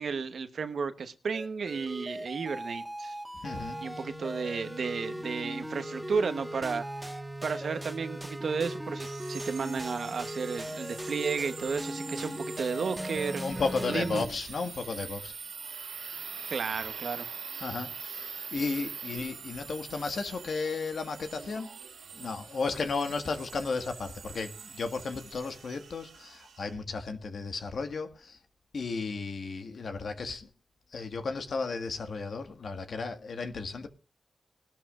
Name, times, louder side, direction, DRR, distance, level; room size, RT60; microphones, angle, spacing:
voice 1, 0.0-3.1 3.8-6.8 7.4-13.4 13.9-14.2 16.5-17.3, right 5 dB, 75° right, 1.1 m, -33 dB
sound 1, 1.3-14.3, equal, 10° right, 1.5 m, -38 dB
voice 2, 3.4-3.8 13.4-15.3 17.6-21.7 22.1-28.4 28.7-30.5 30.9-33.9, left 4 dB, 70° left, 1.7 m, -34 dB
sound 2, 9.0-26.7, right 6 dB, 90° right, 2.6 m, -44 dB
20.5 x 12.5 x 2.5 m
cardioid pair, 60°, 0 cm